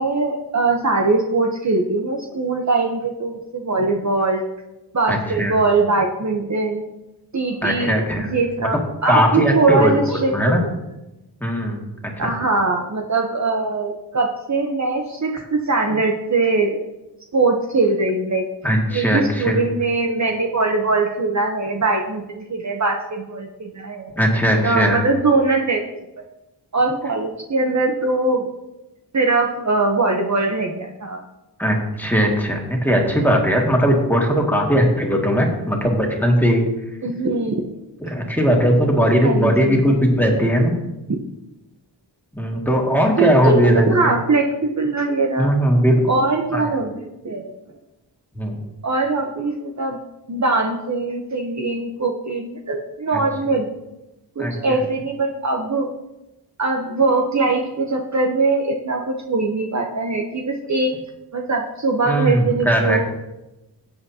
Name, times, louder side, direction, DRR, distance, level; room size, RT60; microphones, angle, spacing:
voice 1, 0.0-4.4 4.9-6.8 7.3-8.8 9.0-10.7 12.2-16.8 17.3-18.4 18.9-24.1 24.6-25.8 26.2-26.3 26.7-28.5 29.1-31.2 37.0-37.7 39.1-39.9 43.2-45.5 46.1-47.5 48.8-50.0 50.3-53.7 54.4-55.9 56.6-60.9 61.3-63.0, right 3 dB, 40° right, 1 dB, 1.0 m, -21 dB
voice 2, 5.1-5.6 7.6-8.7 9.1-10.6 11.4-11.9 12.2-12.3 18.6-19.6 24.2-25.0 31.6-36.7 38.0-40.8 42.3-44.1 45.4-46.0 46.5-46.7 48.3-48.6 53.1-53.2 54.4-54.8 62.1-63.0, equal, 5° left, -1 dB, 2.2 m, -19 dB
16.0 x 8.0 x 2.9 m, 0.95 s
wide cardioid pair, 95°, 41 cm